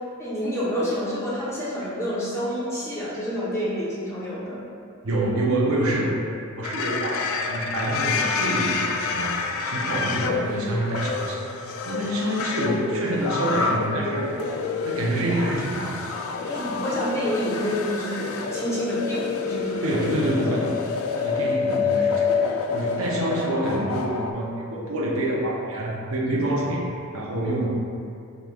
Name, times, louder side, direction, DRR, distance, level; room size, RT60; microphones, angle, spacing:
voice 1, 0.2-4.6 16.5-20.0, equal, 15° left, -8 dB, 0.8 m, -28 dB
voice 2, 5.0-9.4 9.6-11.4 11.8-14.4 14.8-16.1 19.8-22.3 22.7-27.7, right 1 dB, 80° right, -2 dB, 0.6 m, -26 dB
sound 1, 6.6-24.3, left 5 dB, 75° left, 0.3 m, -28 dB
5.3 x 3.1 x 2.3 m, 2.5 s
head